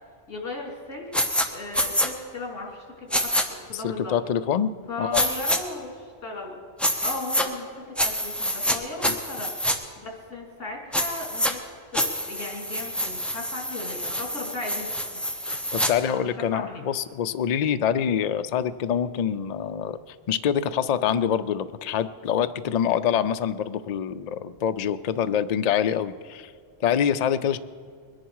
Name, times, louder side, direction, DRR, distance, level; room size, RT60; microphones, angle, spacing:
voice 1, 0.3-1.1 1.5-4.2 4.9-6.6 7.0-9.5 10.0-11.6 11.9-15.2 16.1-16.8, left 2 dB, 70° left, 0 dB, 3.0 m, -36 dB
sound 1, 1.1-1.5 1.7-2.1 3.1-3.4 5.1-5.6 6.8-7.5 8.0-8.8 9.0-9.8 10.9-11.5 11.9-15.9, equal, ahead, 0.8 m, -26 dB
voice 2, 3.7-4.7 5.0-5.2 9.0-9.1 15.5-20.0 20.3-26.5 26.8-27.6, left 8 dB, 90° left, 10 dB, 0.3 m, -25 dB
22.0 x 10.5 x 4.7 m, 2.1 s
omnidirectional pair, 1.3 m